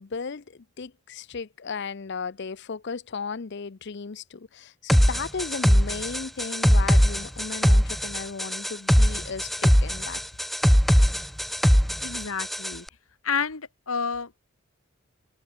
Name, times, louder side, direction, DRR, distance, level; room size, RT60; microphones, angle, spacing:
voice 1, 0.0-10.2, left 5 dB, 50° left, 0.6 m, -35 dB
sound 1, 4.9-12.8, equal, ahead, 0.3 m, -21 dB
voice 2, 12.0-12.8 13.2-14.4, left 5 dB, 75° left, 1.7 m, -30 dB
head